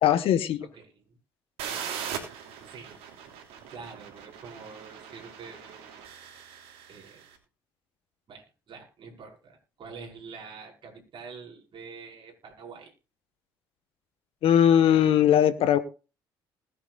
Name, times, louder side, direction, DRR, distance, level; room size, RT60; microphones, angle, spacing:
voice 1, 0.0-0.7 14.4-15.8, left 10 dB, 60° left, 11 dB, 1.5 m, -20 dB
voice 2, 0.6-1.2 2.7-3.0 3.7-5.9 6.9-7.2 8.3-12.9, right 5 dB, 45° right, -1 dB, 5.5 m, -46 dB
sound 1, 1.6-7.3, right 8 dB, 65° right, 3.2 m, -40 dB
20.5 x 9.6 x 2.5 m, 0.32 s
hypercardioid pair, 55°, 11 cm